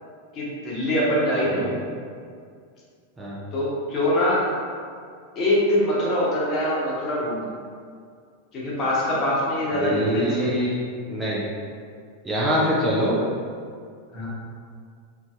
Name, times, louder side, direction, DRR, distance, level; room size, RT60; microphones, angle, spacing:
voice 1, 0.3-1.6 3.5-4.5 5.3-7.5 8.5-10.6 14.1-14.3, left 1 dB, 30° left, -6 dB, 0.9 m, -23 dB
voice 2, 9.8-10.7 11.1-11.4 12.2-13.1, equal, 15° right, -6 dB, 0.5 m, -24 dB
2.6 x 2.4 x 3.4 m, 2.2 s
figure-of-eight pair, 90°, 0 cm